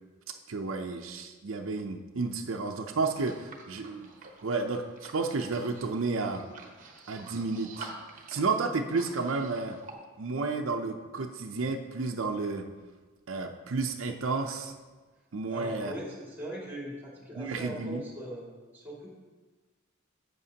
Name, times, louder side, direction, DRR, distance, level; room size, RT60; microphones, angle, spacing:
voice 1, 0.5-4.1 4.4-6.4 7.1-7.9 8.3-9.8 10.2-12.7 13.3-14.7 15.3-15.9 17.4-18.0, right 3 dB, 70° right, 3 dB, 0.6 m, -31 dB
sound 1, 3.2-9.9, right 3 dB, 40° right, 1.0 m, -48 dB
voice 2, 15.5-19.1, right 1 dB, 10° right, -4 dB, 2.2 m, -40 dB
11.0 x 7.9 x 2.8 m, 1.3 s
head